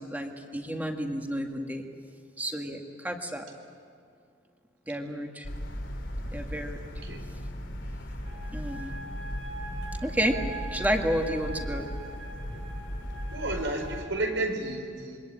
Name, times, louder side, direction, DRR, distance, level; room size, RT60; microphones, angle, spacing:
voice 1, 0.0-1.9 2.4-3.5 4.9-5.5 6.3-6.8 8.5-8.9 10.0-10.4 10.7-11.9, equal, 10° right, 3 dB, 1.9 m, -31 dB
sound 1, 5.4-14.0, equal, 80° left, 3.0 m, -37 dB
sound 2, 8.2-14.4, right 2 dB, 35° right, 3.4 m, -43 dB
voice 2, 13.3-15.2, right 2 dB, 80° right, 4 dB, 4.7 m, -32 dB
26.5 x 23.5 x 9.0 m, 2.3 s
head